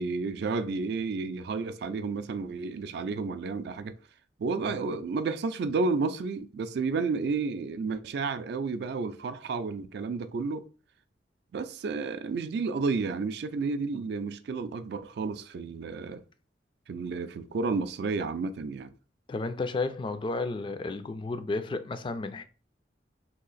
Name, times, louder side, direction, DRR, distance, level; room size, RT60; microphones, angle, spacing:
voice 1, 0.0-4.0 4.4-10.7 11.5-16.2 16.9-18.9, right 4 dB, 65° right, 0.3 m, -31 dB
voice 2, 19.3-22.4, left 3 dB, 30° left, 0.3 m, -32 dB
2.9 x 2.4 x 3.9 m
head